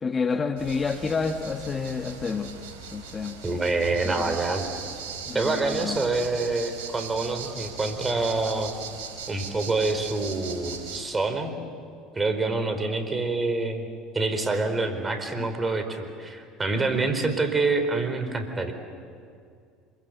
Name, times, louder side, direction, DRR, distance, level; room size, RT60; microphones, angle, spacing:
voice 1, 0.0-2.5 2.9-3.4 4.0-4.4 5.3-6.0 15.4-15.5 16.8-16.9, left 5 dB, 30° left, 6 dB, 1.6 m, -29 dB
sound 1, 0.6-11.0, right 6 dB, 75° right, 4.8 m, -39 dB
voice 2, 3.4-4.6 5.3-8.7 9.3-11.5 12.1-13.8 14.1-18.7, right 3 dB, 20° right, 8 dB, 4.4 m, -26 dB
27.0 x 23.5 x 8.0 m, 2.3 s
hypercardioid pair, 75°, 0 cm